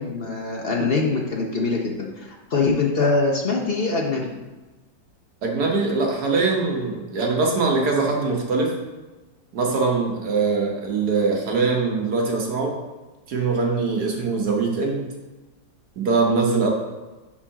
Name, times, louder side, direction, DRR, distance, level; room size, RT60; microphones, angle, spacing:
voice 1, 0.0-4.3, left 3 dB, 50° left, 0 dB, 0.7 m, -23 dB
voice 2, 5.4-8.7 9.5-12.8 13.3-15.1 16.0-16.7, right 4 dB, 60° right, 0 dB, 1.6 m, -22 dB
5.7 x 4.7 x 5.6 m, 1.2 s
omnidirectional pair, 2.1 m